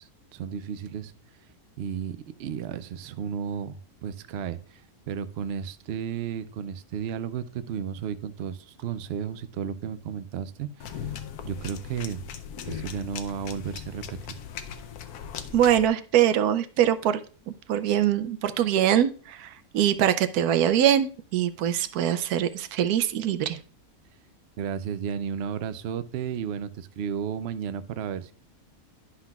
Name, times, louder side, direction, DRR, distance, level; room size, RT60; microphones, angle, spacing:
voice 1, 0.0-1.4 1.8-11.1 11.4-12.3 12.7-14.3 24.6-28.3, right 7 dB, 70° right, 11 dB, 0.6 m, -33 dB
sound 1, 10.8-15.9, left 8 dB, 85° left, 1.2 m, -38 dB
voice 2, 15.5-17.2 17.7-23.6, right 10 dB, 85° right, 10 dB, 1.1 m, -23 dB
11.0 x 5.7 x 2.3 m, 0.40 s
omnidirectional pair, 1.6 m